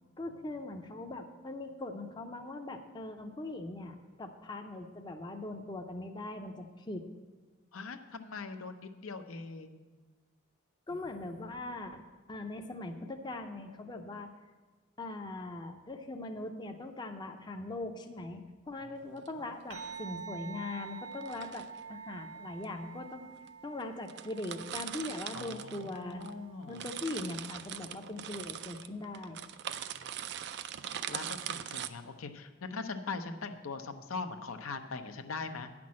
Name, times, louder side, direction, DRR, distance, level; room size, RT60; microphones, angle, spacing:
voice 1, 0.2-7.0 10.9-12.0 12.3-14.3 15.0-18.4 18.7-23.3 23.6-26.3 26.7-29.4, left 2 dB, 20° left, 4 dB, 0.6 m, -41 dB
voice 2, 7.7-9.8 10.9-11.2 18.8-18.9 25.3-26.8 29.7-30.1 31.1-35.7, left 4 dB, 80° left, 7 dB, 0.7 m, -41 dB
sound 1, 19.0-19.3 21.1-21.8 22.6-22.7 23.5-23.6 23.8-23.9 24.1-26.3 26.6-31.9, right 9 dB, 55° right, 0.4 m, -41 dB
sound 2, 19.7-28.4, right 6 dB, 75° right, 1.6 m, -48 dB
9.4 x 6.0 x 7.4 m, 1.3 s
head